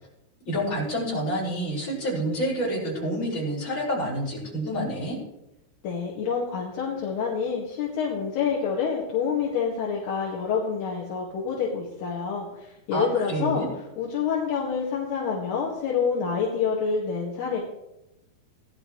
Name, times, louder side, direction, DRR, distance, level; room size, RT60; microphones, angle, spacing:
voice 1, 0.4-5.2 12.9-13.7, equal, 25° left, -6 dB, 6.8 m, -28 dB
voice 2, 5.8-13.6 14.0-17.6, left 6 dB, 70° left, -4 dB, 3.8 m, -27 dB
18.5 x 11.5 x 3.2 m, 0.90 s
omnidirectional pair, 5.0 m